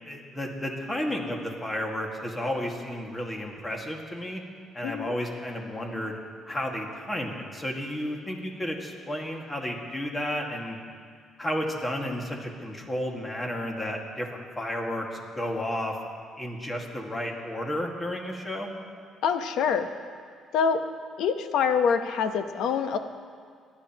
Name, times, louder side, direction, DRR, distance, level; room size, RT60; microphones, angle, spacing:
voice 1, 0.0-4.4 4.7-6.2 6.5-10.8 11.4-16.0 16.4-18.7, left 1 dB, 15° left, 0 dB, 1.8 m, -32 dB
voice 2, 4.8-5.1 19.2-19.9 20.5-20.8 21.2-23.0, left 6 dB, 75° left, 8 dB, 0.8 m, -25 dB
26.0 x 11.0 x 2.9 m, 2.1 s
cardioid pair, 125°, 0 cm